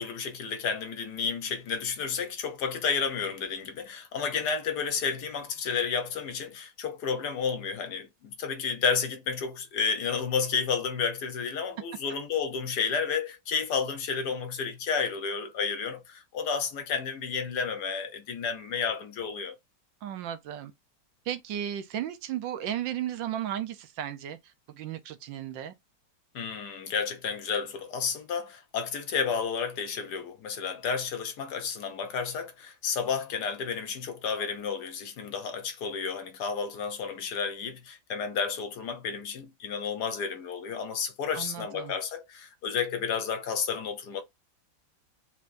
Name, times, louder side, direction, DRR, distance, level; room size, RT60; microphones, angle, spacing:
voice 1, 0.0-19.5 26.3-44.2, left 6 dB, 65° left, 1.2 m, -31 dB
voice 2, 20.0-20.7 21.2-25.7 41.3-41.9, right 10 dB, 75° right, 1.3 m, -35 dB
4.3 x 3.6 x 2.5 m
omnidirectional pair, 2.2 m